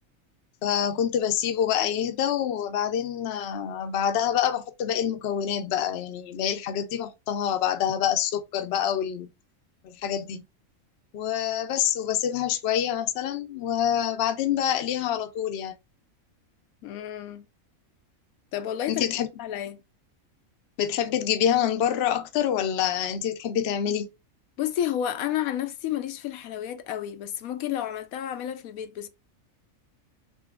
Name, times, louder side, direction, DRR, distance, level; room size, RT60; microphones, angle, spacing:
voice 1, 0.6-9.3 9.8-10.4 11.1-15.7 18.9-19.3 20.8-24.1, left 9 dB, 60° left, 0.8 m, -26 dB
voice 2, 16.8-17.4 18.5-19.1 19.4-19.8 24.6-29.1, left 11 dB, 85° left, 1.0 m, -31 dB
6.3 x 2.7 x 2.2 m
omnidirectional pair, 1.4 m